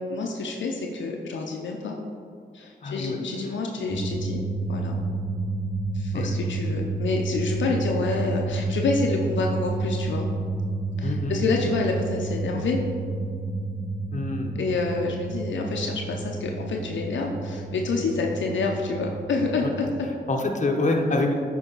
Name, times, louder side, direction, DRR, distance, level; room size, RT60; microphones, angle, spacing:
voice 1, 0.1-2.0 2.5-4.4 4.7-5.0 5.9-10.3 11.0-12.8 14.5-20.1, left 3 dB, 75° left, 1 dB, 0.6 m, -28 dB
voice 2, 2.8-3.2 6.1-6.3 11.0-11.4 14.1-14.5 19.6-19.7 20.3-21.4, left 2 dB, 40° left, 3 dB, 1.0 m, -26 dB
sound 1, 3.9-20.0, right 2 dB, 40° right, 1.7 m, -30 dB
8.1 x 4.6 x 3.9 m, 2.3 s
supercardioid pair, 40°, 19 cm